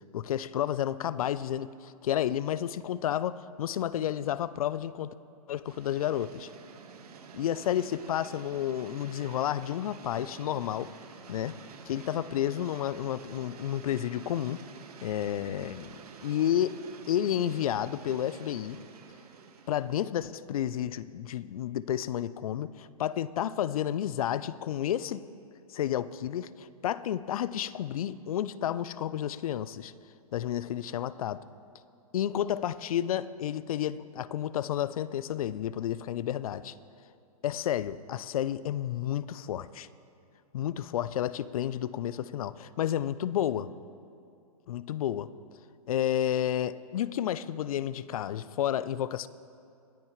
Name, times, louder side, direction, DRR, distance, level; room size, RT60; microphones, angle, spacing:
voice 1, 0.0-5.1 5.5-6.5 7.3-10.9 11.3-11.6 11.9-14.6 15.0-15.9 16.2-16.8 17.1-18.8 19.7-25.2 25.7-29.9 30.3-31.4 32.1-36.7 37.4-39.9 40.5-43.7 44.7-45.3 45.9-49.3, left 11 dB, 65° left, 17 dB, 0.5 m, -31 dB
sound 1, 5.7-20.1, right 5 dB, 75° right, 1.5 m, -49 dB
25.0 x 8.9 x 3.1 m, 2.5 s
hypercardioid pair, 145°, 20 cm